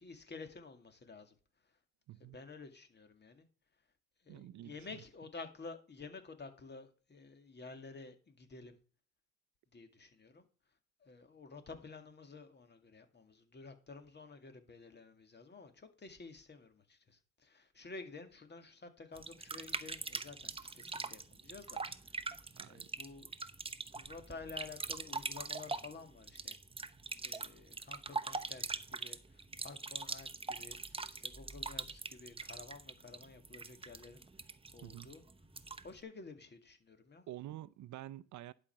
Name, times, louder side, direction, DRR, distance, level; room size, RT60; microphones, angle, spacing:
voice 1, 0.0-1.4 1.6-1.8 2.2-3.5 4.2-8.8 9.7-10.5 11.0-23.3 23.9-26.6 27.2-28.6 28.9-35.2 35.8-37.2, left 4 dB, 35° left, 2.2 m, -52 dB
voice 2, 2.1-2.4 4.3-5.0 22.6-22.9 34.8-35.1 37.3-38.5, right 14 dB, 70° right, 0.6 m, -48 dB
sound 1, 19.1-36.0, right 3 dB, 20° right, 0.9 m, -43 dB
11.0 x 5.3 x 5.8 m
cardioid pair, 90°, 30 cm